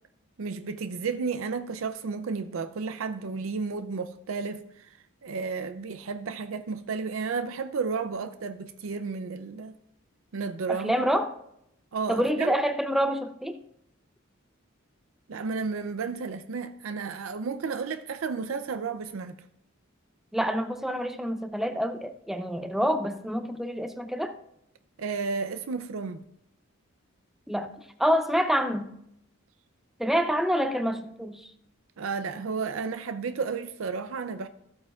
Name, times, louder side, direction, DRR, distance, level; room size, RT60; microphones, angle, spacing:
voice 1, 0.4-4.9 5.2-9.8 10.3-11.0 11.9-12.6 15.3-19.4 25.0-26.2 32.0-34.5, right 5 dB, 75° right, 0.5 m, -32 dB
voice 2, 10.7-11.4 12.1-13.6 20.3-24.4 27.5-27.7 28.0-28.9 30.0-31.5, equal, ahead, 0.5 m, -27 dB
14.5 x 8.7 x 2.4 m
head